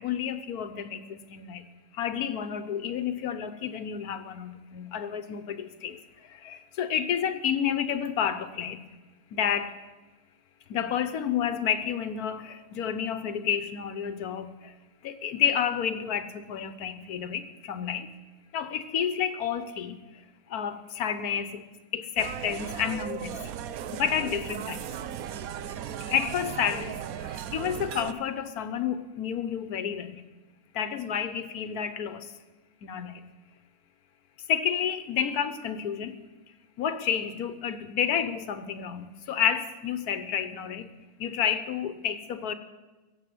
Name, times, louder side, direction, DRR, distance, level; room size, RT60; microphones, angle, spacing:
voice 1, 0.0-1.6 1.9-8.8 9.3-9.7 10.7-14.7 15.0-18.1 18.5-20.0 20.5-21.6 21.9-23.3 23.9-24.9 26.0-30.2 30.7-32.3 32.8-33.2 34.5-36.2 36.8-40.9 41.2-42.5, left 8 dB, 90° left, 11 dB, 1.4 m, -30 dB
sound 1, 22.2-28.1, right 9 dB, 75° right, 1.1 m, -37 dB
16.5 x 7.7 x 9.4 m, 1.2 s
omnidirectional pair, 1.5 m